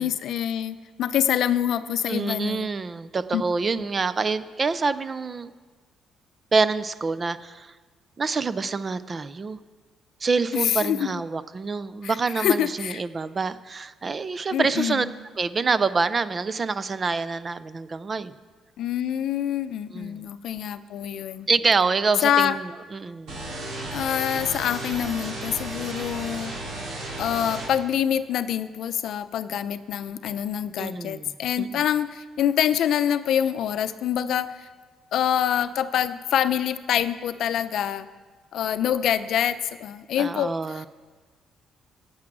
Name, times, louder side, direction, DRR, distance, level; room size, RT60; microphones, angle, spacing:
voice 1, 0.0-2.7 3.3-3.4 3.8-3.9 10.5-11.2 12.0-13.0 14.5-15.1 18.8-21.5 22.2-22.6 23.9-26.5 27.2-34.7 35.1-38.1 38.5-40.9, left 10 dB, 70° left, 12 dB, 0.6 m, -26 dB
voice 2, 2.1-5.5 6.5-7.7 8.2-9.6 10.2-15.1 15.4-18.3 19.9-20.2 21.5-23.4 30.8-31.3 31.6-31.8 40.2-40.9, right 4 dB, 30° right, 15 dB, 0.5 m, -26 dB
sound 1, 23.3-27.7, right 2 dB, 80° right, 5.3 m, -34 dB
15.5 x 8.8 x 6.1 m, 1.4 s
cardioid pair, 135°, 0 cm